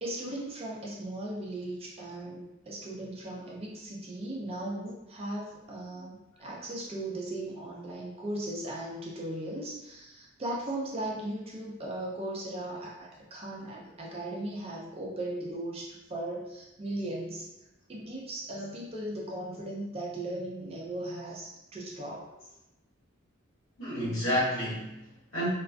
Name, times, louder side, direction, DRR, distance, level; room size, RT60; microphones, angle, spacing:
voice 1, 0.0-17.5 17.9-22.2, right 1 dB, 30° right, -3 dB, 0.3 m, -37 dB
voice 2, 23.8-25.5, equal, 60° left, -9 dB, 1.1 m, -31 dB
2.3 x 2.3 x 2.4 m, 0.95 s
head